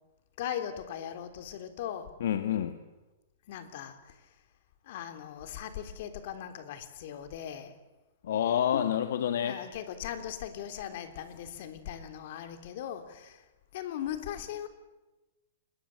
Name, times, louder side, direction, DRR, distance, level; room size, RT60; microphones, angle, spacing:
voice 1, 0.4-2.1 3.5-4.1 4.9-7.7 9.4-13.4 13.7-14.7, left 10 dB, 55° left, 8 dB, 3.5 m, -39 dB
voice 2, 2.2-2.8 8.2-9.6, left 10 dB, 70° left, 9 dB, 1.7 m, -28 dB
26.5 x 22.5 x 8.0 m, 1.1 s
hypercardioid pair, 155°, 0 cm